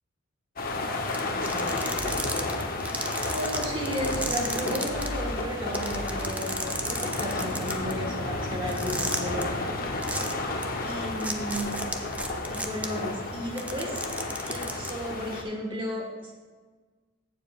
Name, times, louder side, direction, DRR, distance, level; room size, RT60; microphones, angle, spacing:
sound 1, 0.6-15.4, left 2 dB, 40° left, 0.9 m, -32 dB
sound 2, 1.1-5.1 5.4-5.5 5.7-7.9 8.7-9.4 10.0-10.3 10.6-10.7 11.2-12.8 13.5-14.9, right 2 dB, 5° right, 0.4 m, -33 dB
voice 1, 1.2-2.2 3.2-10.0 10.8-11.7 12.5-14.0 14.4-16.3, equal, 25° right, -1 dB, 1.5 m, -34 dB
sound 3, 1.8-15.1, equal, 60° right, 1.8 m, -45 dB
15.0 x 7.0 x 2.4 m, 1.4 s
head